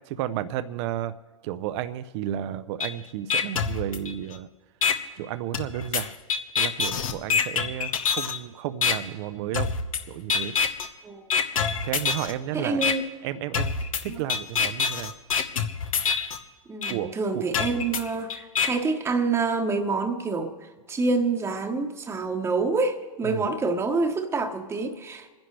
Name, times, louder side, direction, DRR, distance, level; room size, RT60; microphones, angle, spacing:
voice 1, 0.1-1.1 1.4-4.5 5.2-6.1 6.6-9.7 10.1-10.5 11.8-12.9 13.2-15.1 16.9-17.5 23.2-23.5, right 12 dB, 50° right, 13 dB, 0.6 m, -32 dB
sound 1, 2.8-2.9 3.3-4.3 4.8-4.9 5.5-8.4 8.8-8.9 9.5-10.0 10.3-10.9 11.3-12.3 12.8-12.9 13.5-16.4 16.8-16.9 17.5-18.7, left 6 dB, 80° left, 1.1 m, -25 dB
voice 2, 12.5-13.0 14.1-14.2 16.7-20.5 20.9-25.3, right 3 dB, 15° right, 4 dB, 1.1 m, -27 dB
28.0 x 10.5 x 3.2 m, 1.4 s
hypercardioid pair, 105°, 17 cm